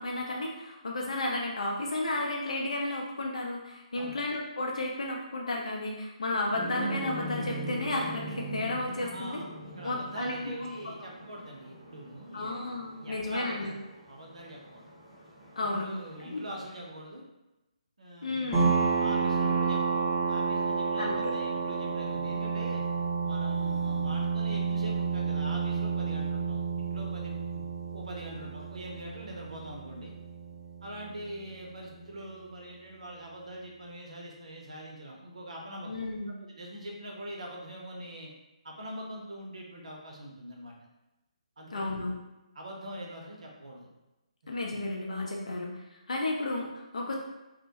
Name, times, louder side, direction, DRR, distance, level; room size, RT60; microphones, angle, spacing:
voice 1, 0.0-9.4 9.8-10.3 12.3-13.7 15.6-15.9 16.2-16.4 18.2-18.8 21.0-21.3 35.9-36.4 41.7-42.1 44.5-45.7 46.1-47.1, left 2 dB, 60° left, -1 dB, 0.5 m, -33 dB
sound 1, 6.5-16.7, right 1 dB, 5° left, 1.0 m, -41 dB
voice 2, 9.1-12.7 12.9-13.8 14.1-14.8 15.6-17.2 18.0-18.6 19.0-22.8 23.2-27.6 27.9-30.1 30.8-35.9 36.6-38.3 38.6-40.7 41.6-41.9 42.5-43.9 44.4-44.5, right 1 dB, 65° right, -1 dB, 0.6 m, -43 dB
sound 2, 18.5-31.8, right 5 dB, 20° right, 0.5 m, -30 dB
2.1 x 2.0 x 2.8 m, 0.99 s
figure-of-eight pair, 140°, 4 cm